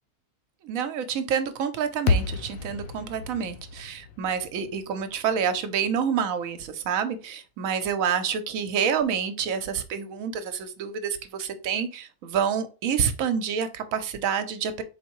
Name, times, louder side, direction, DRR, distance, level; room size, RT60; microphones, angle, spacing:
voice 1, 0.6-14.8, right 7 dB, 70° right, 1.0 m, -28 dB
sound 1, 2.1-6.3, left 4 dB, 70° left, 1.0 m, -31 dB
4.4 x 3.5 x 3.0 m
omnidirectional pair, 1.6 m